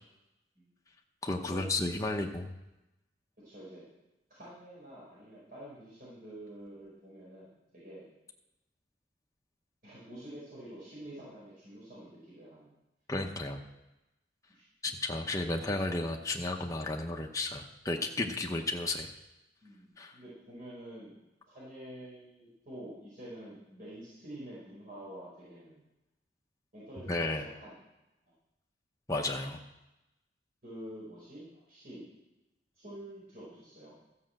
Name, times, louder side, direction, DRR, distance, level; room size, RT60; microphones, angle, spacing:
voice 1, 1.2-2.5 13.1-13.6 14.8-19.1 20.0-20.1 27.1-27.4 29.1-29.6, left 2 dB, 20° left, 1 dB, 0.9 m, -33 dB
voice 2, 3.4-3.8 4.3-8.1 9.8-12.7 14.5-14.7 18.1-18.2 19.6-21.2 21.5-25.8 26.7-27.8 30.6-32.1 32.8-33.9, right 1 dB, 50° right, -8 dB, 4.9 m, -48 dB
14.0 x 5.8 x 7.7 m, 0.96 s
head